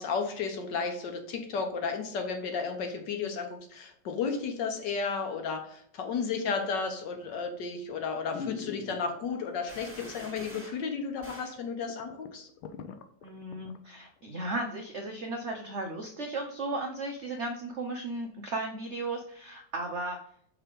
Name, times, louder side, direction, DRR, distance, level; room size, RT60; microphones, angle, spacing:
voice 1, 0.0-12.5, left 5 dB, 65° left, 4 dB, 1.5 m, -33 dB
sound 1, 7.1-7.5 7.9-8.0 8.3-9.4 10.0-10.7 11.0-11.1 11.6-11.7 11.9-13.8 14.2-14.3, left 6 dB, 85° left, 1.5 m, -42 dB
sound 2, 9.7-10.8 11.2-11.6, right 1 dB, 15° right, 2.0 m, -47 dB
voice 2, 13.2-20.2, right 2 dB, 75° right, 2 dB, 0.6 m, -35 dB
5.8 x 3.6 x 5.2 m, 0.63 s
omnidirectional pair, 2.2 m